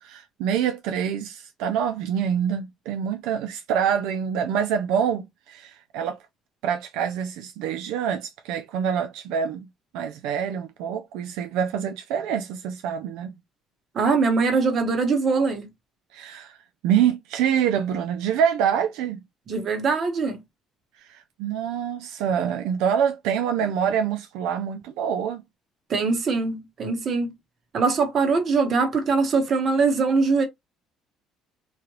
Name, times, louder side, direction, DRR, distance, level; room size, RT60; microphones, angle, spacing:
voice 1, 0.0-6.2 6.6-9.7 9.9-13.3 16.1-16.6 16.8-19.2 21.0-25.4, right 8 dB, 90° right, 0.4 m, -26 dB
voice 2, 13.9-15.7 19.5-20.4 25.9-27.3 27.7-30.4, right 4 dB, 45° right, 1.0 m, -22 dB
3.1 x 2.4 x 2.9 m
cardioid pair, 110°, 0 cm